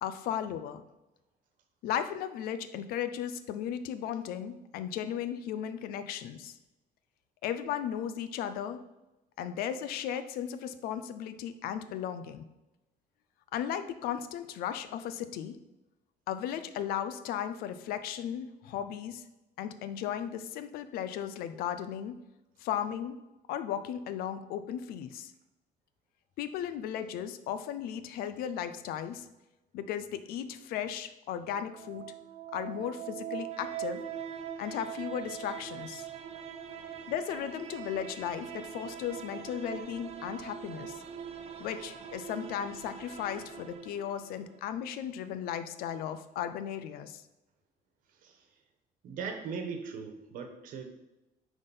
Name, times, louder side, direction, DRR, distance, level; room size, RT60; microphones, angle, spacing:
voice 1, 0.0-0.8 1.8-6.5 7.4-8.8 9.4-12.4 13.5-15.6 16.3-19.2 19.6-22.2 22.6-23.2 23.5-25.3 26.4-29.3 29.7-32.1 32.5-34.0 34.6-36.1 37.1-41.0 41.6-47.2, left 9 dB, 80° left, 11 dB, 0.6 m, -36 dB
sound 1, 31.6-44.5, right 9 dB, 45° right, 0.8 m, -42 dB
voice 2, 49.0-50.9, right 5 dB, 65° right, 5 dB, 1.3 m, -39 dB
9.7 x 3.7 x 5.4 m, 1.0 s
cardioid pair, 150°, 15 cm